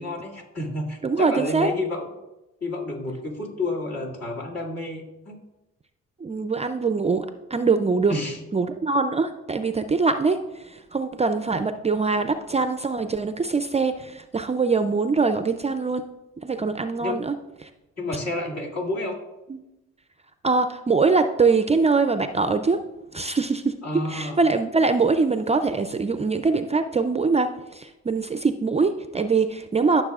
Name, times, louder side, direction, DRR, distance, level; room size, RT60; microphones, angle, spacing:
voice 1, 0.0-2.1 2.6-5.4 8.1-8.4 17.0-17.2 18.0-19.2 23.8-24.4, left 2 dB, 55° left, -3 dB, 2.3 m, -30 dB
voice 2, 1.0-1.7 6.2-8.1 8.5-10.4 10.7-16.1 16.4-17.4 19.5-19.6 20.4-22.8 23.1-30.0, right 4 dB, 20° right, 9 dB, 0.4 m, -23 dB
14.0 x 6.6 x 2.4 m, 0.99 s
cardioid pair, 90°, 30 cm